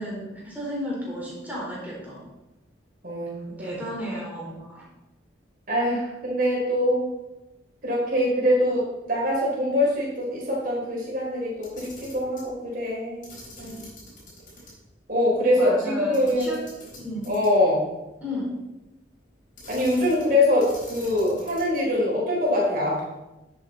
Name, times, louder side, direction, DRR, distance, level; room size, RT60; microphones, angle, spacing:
voice 1, 0.0-2.2 3.6-4.8 15.6-16.6 17.0-17.3 18.2-18.6, equal, 10° right, -6 dB, 4.0 m, -33 dB
voice 2, 3.0-3.7 5.7-7.1 7.8-8.8 9.1-13.2 13.6-13.9 15.1-16.6 17.3-17.8 19.7-23.0, left 1 dB, 45° right, -3 dB, 3.8 m, -23 dB
Camera, 11.6-12.5 13.2-14.7 15.0-15.1 16.1-17.7 19.6-20.3 20.6-21.8, left 1 dB, 45° left, 4.1 m, -45 dB
10.5 x 8.3 x 4.1 m, 1.0 s
head